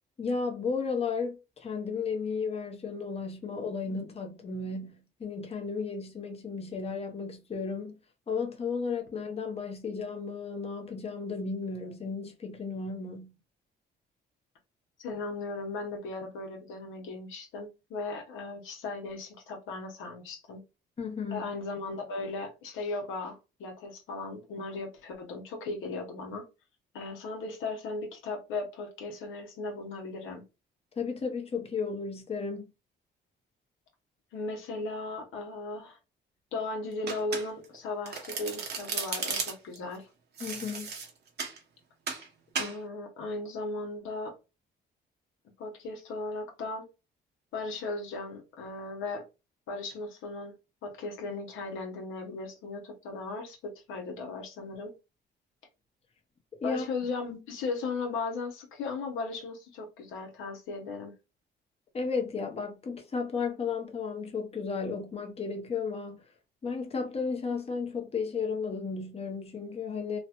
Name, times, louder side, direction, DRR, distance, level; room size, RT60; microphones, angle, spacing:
voice 1, 0.2-8.0 8.3-13.4 21.0-21.5 31.0-32.7 40.4-40.9 56.6-56.9 61.9-66.2 66.6-70.2, left 5 dB, 30° left, 0.8 m, -34 dB
voice 2, 15.0-20.6 21.3-26.5 26.9-30.4 34.3-36.0 36.5-40.1 42.6-44.3 45.6-46.9 47.5-49.3 49.7-50.5 50.8-54.9 56.6-61.1, left 3 dB, 85° left, 1.0 m, -37 dB
Domestic sounds home sounds, 37.1-37.8 38.1-39.8 40.4-41.6 42.1-42.3 42.6-42.8, right 5 dB, 55° right, 0.9 m, -35 dB
3.0 x 2.1 x 2.9 m
cardioid pair, 90°, 20 cm